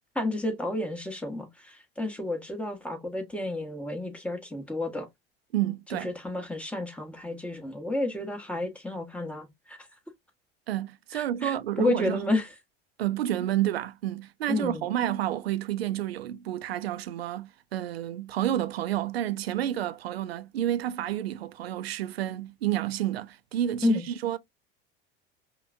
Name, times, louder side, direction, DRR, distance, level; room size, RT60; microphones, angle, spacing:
voice 1, 0.1-5.1 5.9-9.8 11.1-12.5 14.5-14.9 23.8-24.0, left 2 dB, 5° left, 1.4 m, -31 dB
voice 2, 5.5-6.1 10.7-12.2 13.0-24.4, right 12 dB, 85° right, 0.5 m, -30 dB
5.4 x 2.4 x 2.6 m
hypercardioid pair, 80°, 30 cm